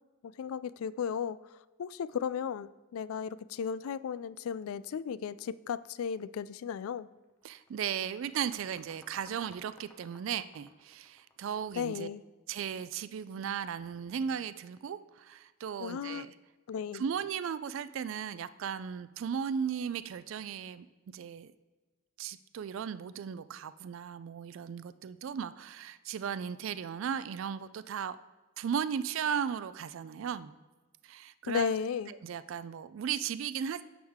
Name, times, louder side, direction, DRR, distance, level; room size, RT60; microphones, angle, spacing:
voice 1, 0.2-1.4 1.8-7.1 11.7-12.2 15.8-16.3 16.7-17.0 31.4-32.1, left 7 dB, 75° left, 0.3 m, -35 dB
sound 1, 6.6-6.8 7.1-12.1, left 1 dB, 10° left, 0.7 m, -60 dB
voice 2, 7.4-12.1 12.5-16.3 16.9-20.9 21.1-21.5 22.2-28.2 28.6-30.5 31.0-31.7 32.1-33.8, right 7 dB, 65° right, 0.3 m, -36 dB
9.3 x 6.4 x 3.6 m
head